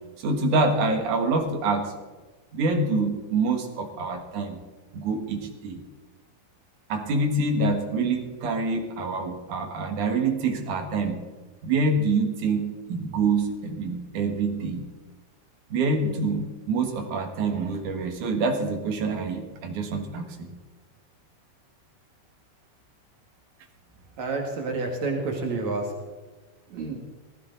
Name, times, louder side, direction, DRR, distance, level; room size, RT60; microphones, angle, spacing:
voice 1, 0.2-1.9 2.5-4.6 4.9-5.8 6.9-11.2 11.6-14.8 15.7-20.5, right 3 dB, 85° right, 5 dB, 3.3 m, -26 dB
voice 2, 24.2-25.9 26.7-27.0, right 3 dB, 70° right, 1 dB, 3.3 m, -29 dB
20.0 x 15.5 x 4.0 m, 1.3 s
omnidirectional pair, 3.4 m